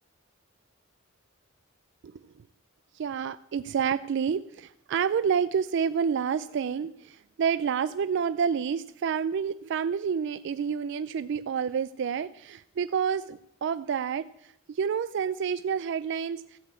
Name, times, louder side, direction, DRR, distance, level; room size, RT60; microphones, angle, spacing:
voice 1, 2.9-14.2 14.7-16.6, right 7 dB, 60° right, 14 dB, 0.3 m, -29 dB
13.5 x 6.1 x 8.2 m, 0.78 s
head